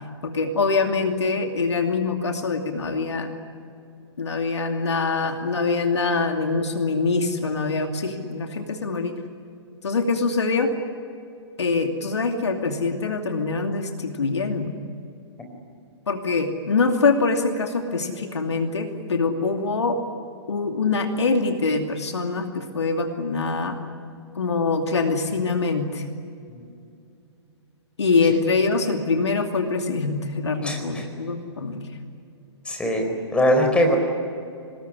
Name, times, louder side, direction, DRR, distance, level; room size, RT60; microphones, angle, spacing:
voice 1, 0.2-3.3 4.2-9.2 9.8-10.7 11.6-14.8 16.1-20.0 20.5-23.8 24.3-26.0 28.0-31.8, left 4 dB, 70° left, 5 dB, 2.7 m, -24 dB
voice 2, 30.6-31.0 32.7-34.0, equal, 5° left, 3 dB, 4.6 m, -21 dB
25.0 x 20.5 x 9.9 m, 2.5 s
figure-of-eight pair, 115°, 15 cm